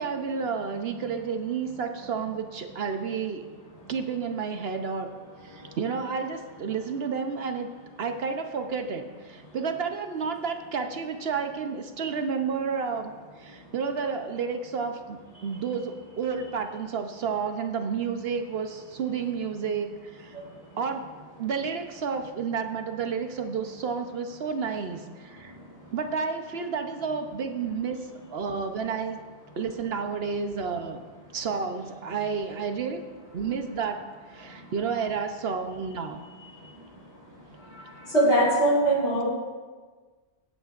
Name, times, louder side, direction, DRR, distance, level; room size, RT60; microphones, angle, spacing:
voice 1, 0.0-3.5 3.9-5.1 5.4-7.7 8.0-13.1 13.4-20.4 20.8-21.1 21.4-25.5 25.9-29.2 29.6-31.0 31.3-33.0 33.3-36.2, right 5 dB, 65° right, 6 dB, 1.0 m, -31 dB
voice 2, 38.1-39.3, right 1 dB, 80° left, -6 dB, 4.1 m, -21 dB
18.0 x 8.9 x 2.5 m, 1.4 s
omnidirectional pair, 1.2 m